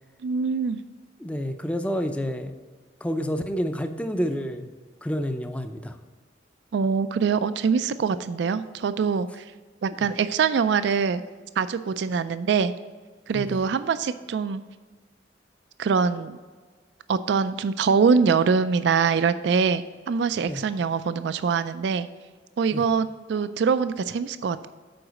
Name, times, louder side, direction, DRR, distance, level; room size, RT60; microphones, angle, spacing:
voice 1, 0.2-0.8 6.7-9.4 9.8-11.2 11.6-12.7 13.3-14.6 15.8-16.4 17.1-22.1 22.6-24.7, right 5 dB, 65° right, 13 dB, 0.3 m, -24 dB
voice 2, 1.2-2.5 3.0-4.7 5.0-6.0 13.3-13.6 20.5-20.6 22.7-22.8, equal, 5° left, 7 dB, 0.5 m, -29 dB
7.8 x 4.8 x 6.3 m, 1.4 s
head